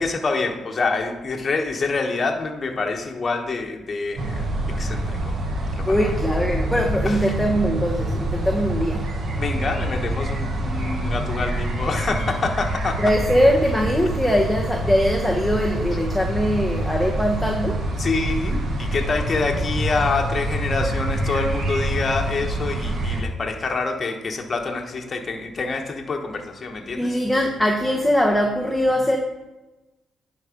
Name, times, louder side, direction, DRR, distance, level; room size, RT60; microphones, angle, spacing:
voice 1, 0.0-4.5 4.8-5.4 5.7-6.1 7.0-7.2 9.4-13.0 18.0-27.2, left 3 dB, 40° left, 2 dB, 1.1 m, -26 dB
sound 1, 4.2-23.2, right 1 dB, 50° right, 1.2 m, -26 dB
voice 2, 5.9-9.0 13.0-17.8 27.0-29.2, equal, ahead, 0 dB, 0.9 m, -21 dB
10.5 x 4.1 x 5.1 m, 1.1 s
cardioid pair, 90°, 0 cm